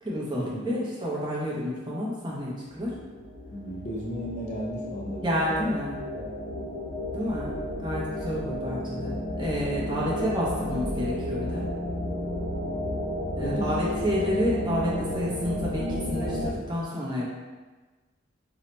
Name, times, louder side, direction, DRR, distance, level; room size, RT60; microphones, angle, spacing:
voice 1, 0.0-2.9 5.2-6.0 7.1-11.7 13.4-17.3, equal, 25° right, -6 dB, 0.7 m, -30 dB
sound 1, 2.7-16.5, left 1 dB, 55° right, 1.1 m, -32 dB
voice 2, 3.5-5.8 6.1-6.3 13.4-13.7, equal, 35° left, -3 dB, 0.4 m, -34 dB
2.7 x 2.1 x 4.1 m, 1.3 s
head